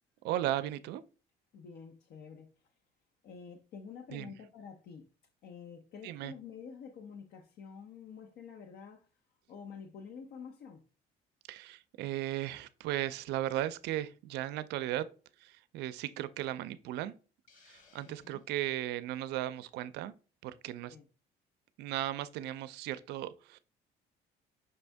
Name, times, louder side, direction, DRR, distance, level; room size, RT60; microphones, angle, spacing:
voice 1, 0.2-1.0 4.1-4.3 6.0-6.3 11.5-15.1 15.4-17.1 17.6-20.1 20.4-21.0 21.8-23.6, right 13 dB, 85° right, 0.4 m, -36 dB
voice 2, 1.5-2.5 3.2-5.1 5.4-9.1 9.5-10.8 18.1-18.4 20.9-21.1, left 6 dB, 70° left, 0.7 m, -48 dB
Hiss, 17.5-18.8, left 5 dB, 50° left, 1.3 m, -64 dB
5.6 x 2.6 x 3.4 m
cardioid pair, 110°, 17 cm